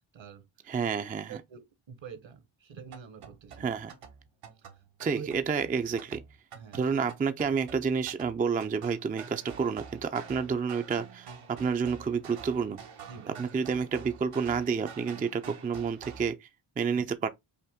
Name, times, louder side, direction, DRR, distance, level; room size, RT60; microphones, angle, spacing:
voice 1, 0.1-0.4 1.3-3.7 4.6-5.3 6.5-6.9 13.1-13.4 16.9-17.1, right 7 dB, 65° right, 1.1 m, -46 dB
voice 2, 0.7-1.4 3.6-3.9 5.0-6.2 6.7-12.8 13.4-16.5 16.8-17.3, right 5 dB, 20° right, 0.3 m, -29 dB
sound 1, 2.7-16.3, right 6 dB, 85° right, 1.1 m, -47 dB
5.4 x 2.1 x 3.5 m
cardioid pair, 85°, 50 cm